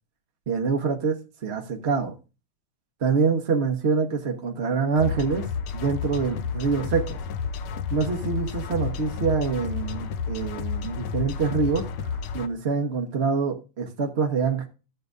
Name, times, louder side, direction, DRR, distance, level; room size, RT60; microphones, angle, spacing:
voice 1, 0.5-2.1 3.0-5.4 5.7-7.2 7.9-14.7, right 5 dB, 40° right, 2 dB, 1.0 m, -25 dB
sound 1, 5.0-12.5, left 6 dB, 80° left, 1.6 m, -31 dB
14.0 x 7.7 x 2.6 m, 0.31 s
omnidirectional pair, 2.4 m